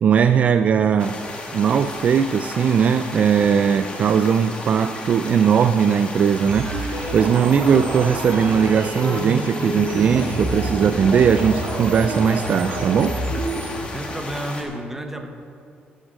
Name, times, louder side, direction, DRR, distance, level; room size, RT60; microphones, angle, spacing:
voice 1, 0.0-1.2 1.5-13.2, right 7 dB, 45° right, 10 dB, 0.3 m, -19 dB
sound 1, 1.0-14.6, left 2 dB, 30° left, 1.6 m, -34 dB
sound 2, 6.5-13.9, right 2 dB, 60° right, 1.8 m, -28 dB
voice 2, 13.9-15.3, right 1 dB, 10° right, 5 dB, 1.0 m, -31 dB
11.5 x 9.0 x 6.2 m, 2.4 s
cardioid pair, 150°, 3 cm